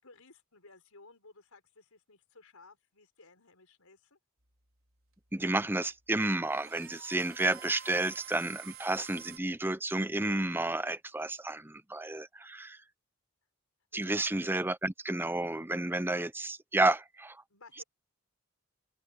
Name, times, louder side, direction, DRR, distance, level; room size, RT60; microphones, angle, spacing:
voice 1, 0.0-4.2 13.9-14.2 17.5-17.8, left 3 dB, 85° left, 5.0 m, -57 dB
sound 1, 4.4-9.4, right 10 dB, 70° right, 5.2 m, -50 dB
voice 2, 5.3-12.8 13.9-17.4, right 2 dB, 10° right, 0.6 m, -31 dB
open air
head